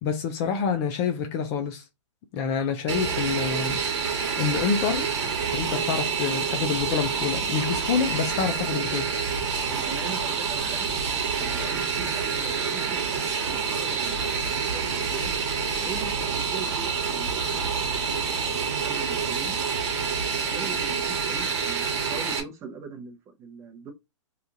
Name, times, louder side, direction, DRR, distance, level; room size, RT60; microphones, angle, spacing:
voice 1, 0.0-1.8 2.3-3.8 4.4-5.1 5.5-9.1, left 6 dB, 30° left, 0.4 m, -27 dB
Fixed-wing aircraft airplane, 2.9-22.4, right 6 dB, 60° right, 1.1 m, -27 dB
voice 2, 9.7-10.9 11.4-13.0 13.4-15.3 15.8-19.6 20.3-23.9, right 5 dB, 20° right, 0.7 m, -41 dB
2.8 x 2.4 x 3.7 m
hypercardioid pair, 150°, 16 cm